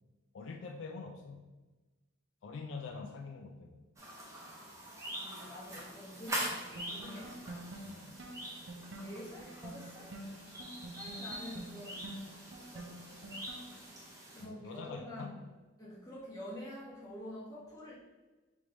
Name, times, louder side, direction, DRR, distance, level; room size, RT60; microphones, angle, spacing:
voice 1, 0.3-1.5 2.4-3.9 7.8-8.2 14.4-15.4, left 4 dB, 70° left, 3 dB, 0.3 m, -45 dB
sound 1, 4.0-14.4, right 1 dB, 15° right, 0.7 m, -44 dB
voice 2, 5.2-7.7 9.0-10.2 10.9-12.1 12.7-12.9 14.3-15.4 15.8-17.9, left 1 dB, 20° left, -8 dB, 1.2 m, -47 dB
sound 2, 6.3-13.9, right 1 dB, 65° right, 0.5 m, -48 dB
3.4 x 3.3 x 3.8 m, 1.2 s
head